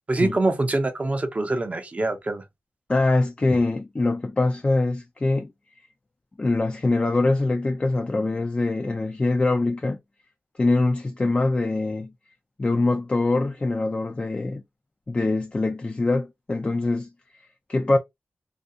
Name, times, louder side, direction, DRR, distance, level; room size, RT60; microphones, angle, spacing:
voice 1, 0.1-2.4, right 2 dB, 35° right, 0.6 m, -24 dB
voice 2, 2.9-5.5 6.4-10.0 10.6-12.1 12.6-14.6 15.1-17.1 17.7-18.0, left 2 dB, 30° left, 0.4 m, -23 dB
2.4 x 2.2 x 2.7 m
wide cardioid pair, 75°, 4 cm